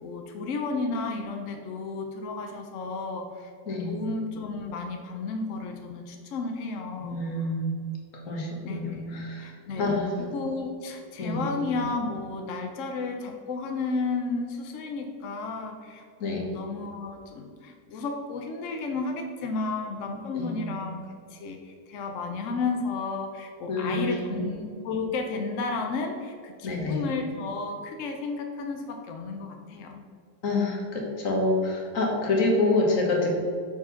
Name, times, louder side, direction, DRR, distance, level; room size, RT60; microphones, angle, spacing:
voice 1, 0.0-3.5 3.8-7.3 8.6-30.0, left 3 dB, 65° left, 4 dB, 0.7 m, -33 dB
voice 2, 7.0-7.8 8.3-9.5 9.8-10.2 11.2-11.5 16.2-16.5 20.3-20.6 23.7-24.4 26.6-27.0 30.4-33.4, left 2 dB, 50° left, -1 dB, 1.6 m, -27 dB
5.9 x 4.4 x 5.7 m, 2.2 s
omnidirectional pair, 1.9 m